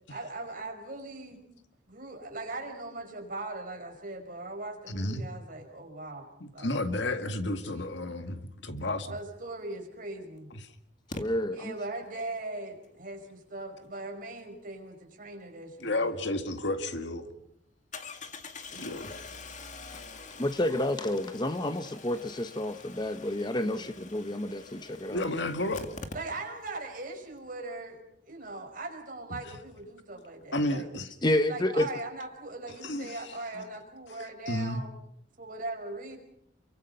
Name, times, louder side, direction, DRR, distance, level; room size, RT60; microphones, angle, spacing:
voice 1, 0.1-1.4 1.9-6.3 6.5-6.8 7.7-8.0 9.1-10.5 11.5-16.2 18.7-19.2 23.6-23.9 26.1-28.0 28.2-30.9 31.2-34.9 35.4-36.2, right 2 dB, 50° right, 3 dB, 5.4 m, -40 dB
voice 2, 4.9-5.2 6.4-9.1 15.8-17.3 18.8-19.1 25.1-25.9 29.3-29.4 30.5-31.1 31.8-31.9 32.8-33.2 33.5-33.6 34.5-34.8, left 1 dB, 70° left, 8 dB, 2.0 m, -32 dB
Engine starting, 9.6-9.7 11.1-11.2 16.3-16.4 16.8-16.9 17.9-26.7 27.0-27.1 27.3-27.4, left 3 dB, 40° left, 2.0 m, -45 dB
voice 3, 11.1-11.7 20.4-25.3 31.2-31.9, left 1 dB, 25° left, 10 dB, 0.9 m, -29 dB
29.0 x 23.5 x 5.7 m, 0.75 s
head